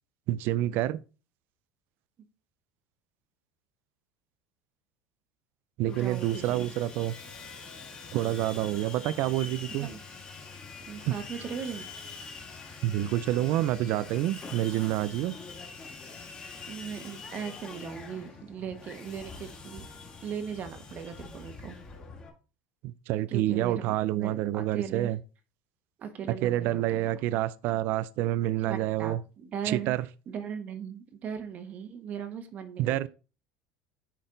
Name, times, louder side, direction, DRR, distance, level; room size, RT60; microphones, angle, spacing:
voice 1, 0.3-1.0 5.8-7.1 8.1-9.9 11.0-11.1 12.8-15.3 22.8-25.2 26.4-29.2 29.6-30.1 32.8-33.1, right 14 dB, 60° right, 0.4 m, -28 dB
Sawing, 5.8-22.3, left 4 dB, 25° left, 2.2 m, -44 dB
voice 2, 5.9-6.7 9.8-10.0 10.8-11.9 16.7-19.8 20.2-21.8 23.3-25.1 26.0-27.1 28.6-29.9 30.3-33.1, right 7 dB, 40° right, 1.3 m, -38 dB
10.0 x 4.2 x 3.9 m
supercardioid pair, 120°, 4 cm